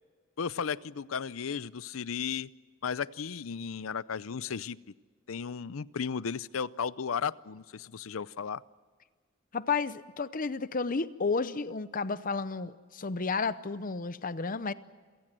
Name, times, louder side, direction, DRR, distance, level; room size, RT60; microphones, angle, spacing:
voice 1, 0.4-2.5 2.8-4.8 5.3-8.6, left 6 dB, 90° left, 19 dB, 0.6 m, -34 dB
voice 2, 9.5-14.7, left 4 dB, 45° left, 15 dB, 0.7 m, -32 dB
27.5 x 18.0 x 7.6 m, 1.6 s
head